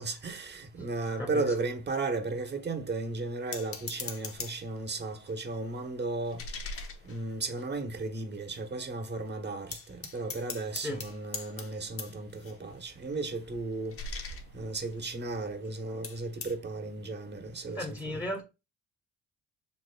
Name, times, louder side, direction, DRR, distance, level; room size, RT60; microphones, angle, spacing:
voice 1, 0.0-6.4 7.0-13.9 14.5-18.2, right 3 dB, 35° right, 1.1 m, -35 dB
sound 1, 3.5-4.8 5.2-8.0 8.5-8.6 8.9-9.2 9.7-15.7 16.0-16.6, left 4 dB, 45° left, 1.0 m, -43 dB
voice 2, 17.7-18.4, left 1 dB, 10° left, 1.4 m, -35 dB
6.8 x 2.9 x 2.3 m
cardioid pair, 90°, 30 cm